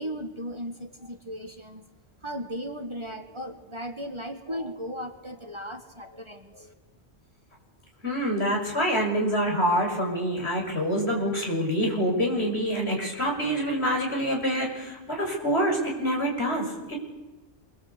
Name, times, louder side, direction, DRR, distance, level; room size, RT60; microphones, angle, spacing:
voice 1, 0.0-1.8 2.2-6.7, equal, 25° right, 6 dB, 1.6 m, -36 dB
voice 2, 8.0-17.0, equal, 70° left, 0 dB, 6.7 m, -26 dB
27.5 x 23.0 x 8.2 m, 1.1 s
omnidirectional pair, 1.1 m